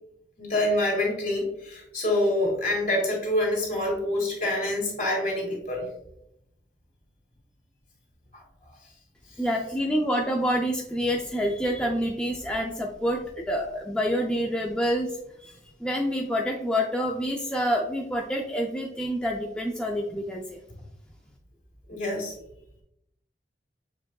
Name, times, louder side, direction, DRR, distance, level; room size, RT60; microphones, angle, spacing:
voice 1, 0.4-5.9 20.1-20.2 21.9-22.3, left 1 dB, 45° left, -2 dB, 1.8 m, -26 dB
voice 2, 9.4-15.1 15.4-15.6 15.8-20.6, equal, 5° left, 0 dB, 0.3 m, -27 dB
6.6 x 3.6 x 2.2 m, 0.82 s
head